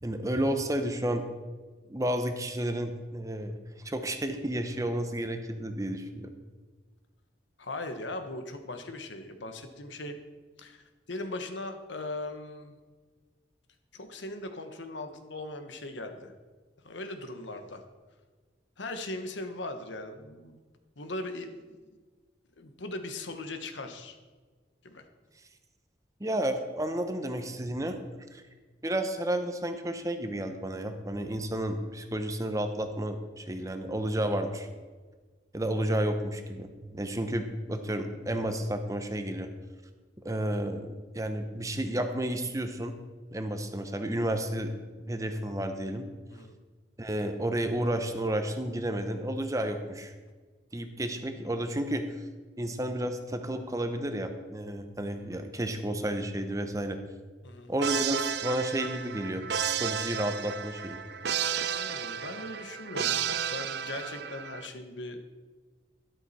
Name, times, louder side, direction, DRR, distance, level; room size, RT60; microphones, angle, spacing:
voice 1, 0.0-1.2 1.9-3.6 3.8-6.3 26.2-28.0 28.3-28.4 28.8-34.7 35.5-39.5 40.2-42.9 43.3-46.0 47.0-50.1 50.7-52.0 52.6-57.0 57.7-61.0, right 1 dB, 15° right, 7 dB, 0.8 m, -31 dB
voice 2, 7.6-10.2 10.6-12.8 13.9-16.3 16.8-17.8 18.8-20.6 21.0-21.8 22.6-24.2 24.8-25.1 46.3-46.5 57.4-57.7 61.7-65.2, left 2 dB, 75° left, 7 dB, 1.3 m, -39 dB
sound 1, 57.8-64.7, right 8 dB, 60° right, 0.5 m, -32 dB
12.5 x 11.5 x 4.3 m, 1.4 s
head